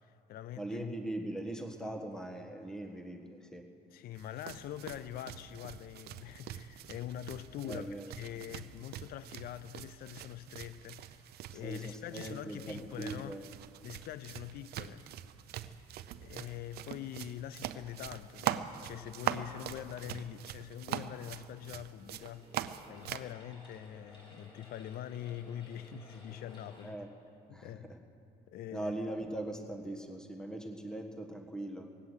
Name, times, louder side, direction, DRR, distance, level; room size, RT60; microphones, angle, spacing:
voice 1, 0.0-0.9 3.9-13.4 13.8-15.1 15.6-15.8 16.2-22.5 22.9-27.0 27.5-27.9 28.5-28.9, left 11 dB, 65° left, 0.5 m, -44 dB
voice 2, 0.6-3.6 7.6-8.1 11.6-13.4 26.8-27.1 27.5-27.8 28.7-31.9, right 1 dB, 5° left, 1.4 m, -40 dB
sound 1, 4.2-23.3, right 12 dB, 70° right, 0.6 m, -43 dB
sound 2, 21.8-26.9, left 1 dB, 30° left, 3.5 m, -57 dB
19.0 x 8.4 x 8.1 m
cardioid pair, 110°, 17 cm